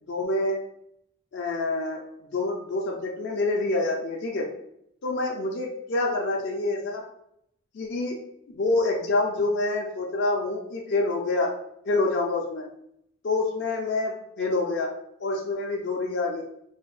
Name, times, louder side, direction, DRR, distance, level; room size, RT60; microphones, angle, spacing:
voice 1, 0.1-0.6 1.3-2.0 2.3-4.5 5.0-7.0 7.7-8.2 8.5-11.5 11.9-12.7 13.2-14.9 15.2-16.4, left 2 dB, 55° left, -1 dB, 0.4 m, -27 dB
3.3 x 2.1 x 2.3 m, 0.73 s
head